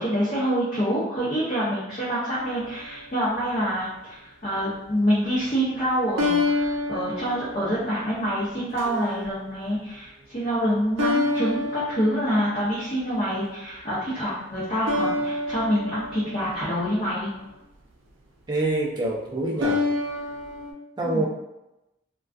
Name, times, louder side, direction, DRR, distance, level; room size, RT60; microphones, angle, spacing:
voice 1, 0.0-17.3 21.0-21.2, equal, 30° left, -9 dB, 0.5 m, -26 dB
sound 1, 2.4-3.2 6.2-8.2 8.8-9.2 11.0-12.9 14.9-17.3 19.6-20.7, left 2 dB, 90° right, 0.5 m, -28 dB
voice 2, 18.5-19.8 21.0-21.2, right 2 dB, 20° right, -4 dB, 0.4 m, -25 dB
2.4 x 2.2 x 2.3 m, 0.92 s
head